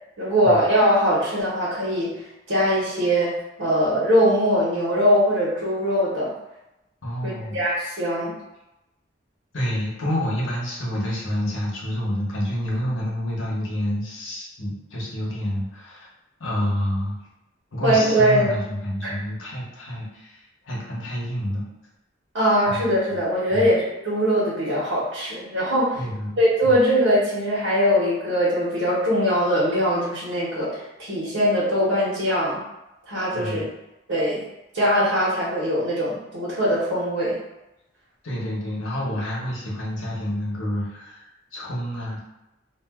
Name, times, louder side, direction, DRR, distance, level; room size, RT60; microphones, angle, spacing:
voice 1, 0.2-2.2 2.5-3.3 3.6-6.3 7.2-8.3 17.8-18.5 19.0-19.1 22.3-26.0 26.4-32.6 33.1-33.6 34.1-34.4 34.7-37.4, equal, 85° right, -9 dB, 1.0 m, -21 dB
voice 2, 7.0-7.6 9.5-16.1 16.4-17.2 17.7-21.7 22.7-22.8 23.5-23.7 26.0-26.8 33.3-33.6 38.2-42.2, equal, 85° left, -4 dB, 0.9 m, -28 dB
2.4 x 2.2 x 3.5 m, 0.93 s
head